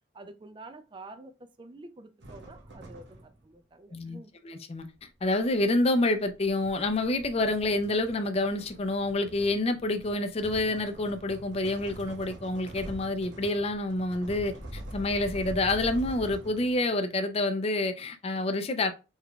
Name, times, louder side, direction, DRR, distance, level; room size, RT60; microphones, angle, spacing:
voice 1, 0.1-1.3 1.6-4.3, right 2 dB, 25° right, 0.4 m, -48 dB
sound 1, 2.2-3.5 4.7-17.0, right 1 dB, 75° right, 1.1 m, -44 dB
voice 2, 4.4-4.9 5.2-18.9, left 2 dB, 35° left, 0.5 m, -28 dB
3.6 x 3.5 x 2.2 m
head